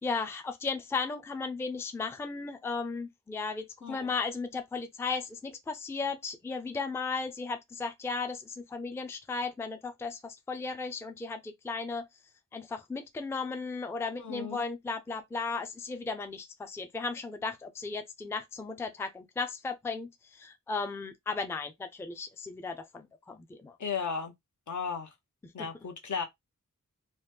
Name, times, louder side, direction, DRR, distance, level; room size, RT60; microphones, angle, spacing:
voice 1, 0.0-12.1 12.5-23.8 25.4-25.7, left 4 dB, 10° left, 0.4 m, -35 dB
voice 2, 14.2-14.6 23.8-24.3 24.7-25.1 25.5-26.2, left 6 dB, 65° left, 0.8 m, -35 dB
3.0 x 2.1 x 3.3 m
wide cardioid pair, 115°, 32 cm